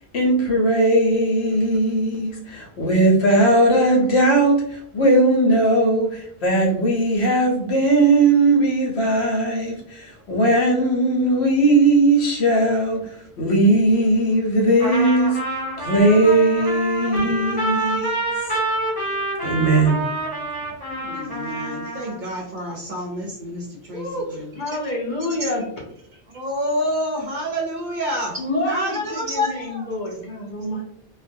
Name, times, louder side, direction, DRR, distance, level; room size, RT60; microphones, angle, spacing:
voice 1, 0.1-15.4 15.8-18.2 19.4-20.0, right 2 dB, 75° left, -1 dB, 1.0 m, -18 dB
Trumpet, 14.8-22.2, right 1 dB, 10° left, 0.9 m, -27 dB
voice 2, 20.9-24.8 25.4-25.5 26.1-29.9, equal, 50° right, -2 dB, 0.7 m, -28 dB
voice 3, 23.9-24.3 24.5-25.6 28.4-28.9 29.3-29.5 29.9-30.8, left 1 dB, 50° left, -2 dB, 0.7 m, -27 dB
2.4 x 2.1 x 2.6 m, 0.69 s
omnidirectional pair, 1.1 m